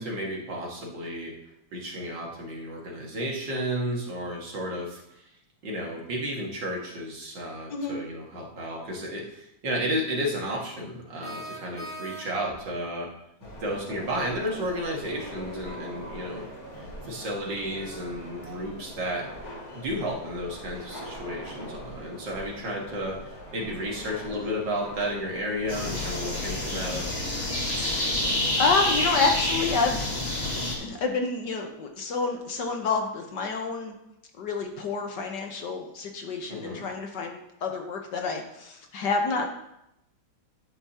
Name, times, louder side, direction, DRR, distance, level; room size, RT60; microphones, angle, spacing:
voice 1, 0.0-1.3 1.7-5.2 5.6-13.1 13.6-16.5 16.8-19.2 19.7-27.1 36.5-36.9, equal, 65° right, -2 dB, 2.5 m, -32 dB
sound 1, 11.2-12.6, right 1 dB, 5° left, 1.4 m, -40 dB
sound 2, 13.4-27.3, equal, 90° left, 3.8 m, -43 dB
sound 3, 25.7-30.7, left 1 dB, 30° left, 2.4 m, -28 dB
voice 2, 27.7-28.0 28.6-30.1 30.4-33.9 34.4-39.5, left 4 dB, 60° left, 3 dB, 1.6 m, -29 dB
11.5 x 9.6 x 2.9 m, 0.83 s
omnidirectional pair, 2.2 m